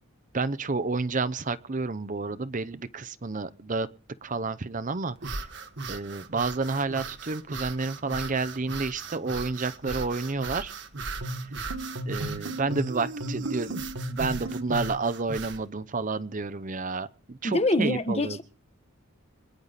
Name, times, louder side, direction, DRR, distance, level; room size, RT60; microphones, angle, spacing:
voice 1, 0.3-3.9 4.2-5.5 5.9-10.7 12.1-13.8 14.1-18.4, right 3 dB, 35° right, 0.7 m, -30 dB
sound 1, 5.2-15.6, right 4 dB, 55° right, 1.5 m, -38 dB
sound 2, 11.2-15.1, right 1 dB, 75° right, 1.9 m, -35 dB
voice 2, 17.4-18.4, left 1 dB, 30° left, 1.5 m, -25 dB
26.0 x 10.5 x 4.1 m
head